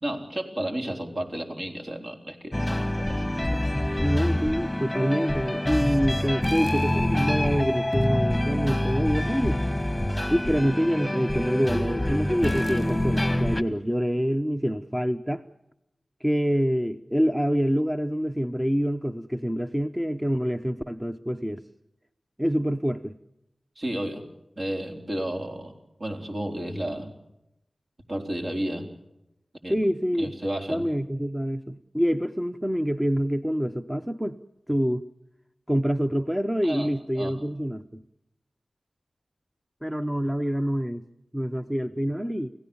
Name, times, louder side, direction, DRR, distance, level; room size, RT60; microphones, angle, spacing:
voice 1, 0.0-3.6 23.8-24.2 24.6-27.1 28.1-28.9 29.6-29.8 30.2-30.8 36.6-36.9 37.2-37.4, right 1 dB, 50° right, 4.1 m, -32 dB
sound 1, 2.5-13.6, left 1 dB, 10° left, 1.7 m, -26 dB
voice 2, 4.0-9.6 10.3-15.4 16.2-21.6 22.4-23.1 29.7-30.3 30.7-34.4 34.7-35.0 35.7-38.0 39.8-41.0 41.3-42.5, equal, 10° right, 0.8 m, -26 dB
29.5 x 17.0 x 7.1 m
wide cardioid pair, 60°, 0 cm